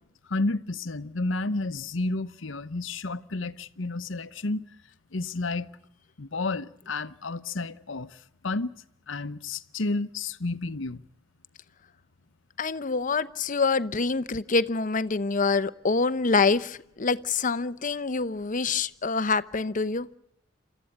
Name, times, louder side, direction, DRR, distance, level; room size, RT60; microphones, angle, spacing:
voice 1, 0.3-4.6 5.1-5.7 6.2-8.7 9.1-11.0, left 2 dB, 70° left, 0.9 m, -31 dB
voice 2, 12.6-20.1, left 4 dB, 40° left, 0.8 m, -26 dB
28.0 x 14.0 x 8.5 m
head